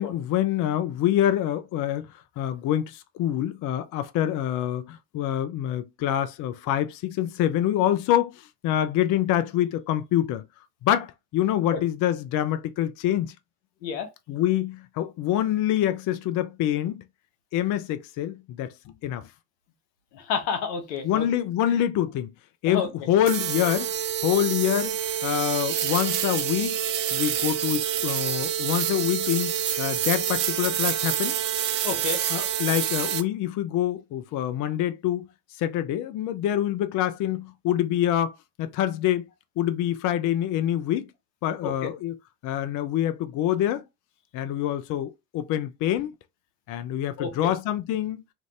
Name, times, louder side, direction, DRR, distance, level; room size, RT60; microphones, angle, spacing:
voice 1, 0.0-2.1 2.4-10.4 10.8-13.3 14.3-17.0 17.5-18.7 19.0-19.3 21.0-22.3 22.6-23.9 24.2-26.8 27.1-31.4 32.3-35.3 35.6-39.3 39.6-41.1 41.4-42.2 42.4-43.8 44.3-46.1 46.7-48.2, left 11 dB, 40° left, 0.4 m, -26 dB
voice 2, 20.1-21.3 21.7-21.8 22.7-22.9 31.8-32.2 41.6-41.9 47.2-47.5, left 6 dB, 80° left, 0.9 m, -30 dB
sound 1, 23.3-33.2, right 10 dB, 80° right, 0.6 m, -27 dB
2.5 x 2.5 x 3.1 m
hypercardioid pair, 60°, 50 cm